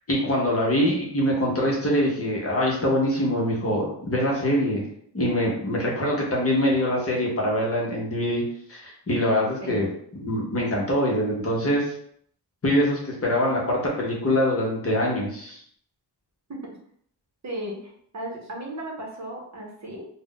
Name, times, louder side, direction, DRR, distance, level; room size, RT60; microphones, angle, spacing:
voice 1, 0.1-4.8 5.1-8.4 8.7-11.9 12.6-15.6, equal, 35° left, -3 dB, 0.8 m, -24 dB
voice 2, 17.4-20.1, right 1 dB, 40° right, -1 dB, 0.7 m, -35 dB
2.4 x 2.1 x 3.7 m, 0.65 s
wide cardioid pair, 130°, 41 cm